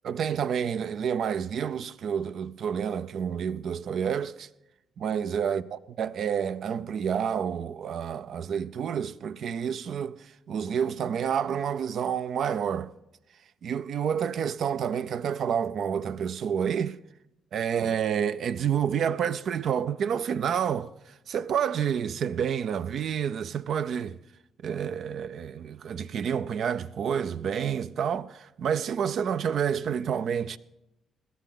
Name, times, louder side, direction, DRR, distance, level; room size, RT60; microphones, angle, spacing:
voice 1, 0.0-4.5 5.0-12.9 13.6-17.0 17.5-20.9 21.3-24.2 24.6-30.6, right 8 dB, 65° right, 0.5 m, -29 dB
17.5 x 12.5 x 3.9 m
supercardioid pair, 60°, 0 cm